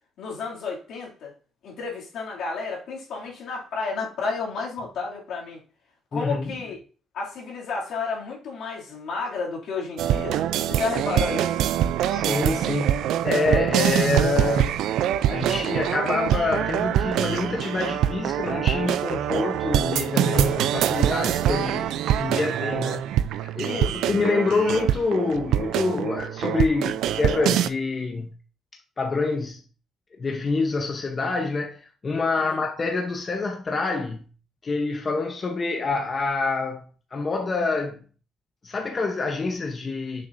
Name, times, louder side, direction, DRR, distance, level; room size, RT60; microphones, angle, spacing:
voice 1, 0.2-1.3 1.6-5.6 6.1-6.8 7.1-10.4 10.7-11.6 23.6-24.0 32.3-32.6, left 4 dB, 80° left, 2.5 m, -31 dB
voice 2, 6.1-6.5 12.1-14.8 15.3-23.0 23.4-23.8 24.1-28.3 29.0-29.6 30.2-34.3 34.6-36.9 37.1-38.0 38.6-40.3, left 3 dB, 35° left, 0.8 m, -26 dB
sound 1, 10.0-27.7, right 11 dB, 85° right, 0.3 m, -24 dB
6.6 x 6.5 x 2.6 m
cardioid pair, 90°, 0 cm